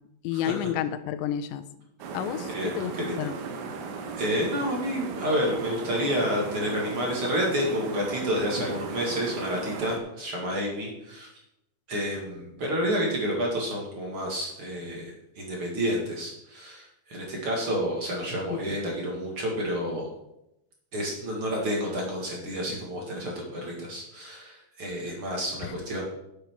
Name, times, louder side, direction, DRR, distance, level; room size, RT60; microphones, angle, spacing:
voice 1, 0.2-1.6 2.1-3.4 18.5-18.8, left 11 dB, 90° left, 12 dB, 3.0 m, -31 dB
sound 1, 2.0-10.0, right 5 dB, 85° right, 3.5 m, -36 dB
voice 2, 2.5-3.3 4.2-11.3 11.9-20.1 20.9-26.0, equal, 45° right, -2 dB, 1.9 m, -29 dB
10.0 x 8.1 x 4.6 m, 0.85 s
omnidirectional pair, 5.1 m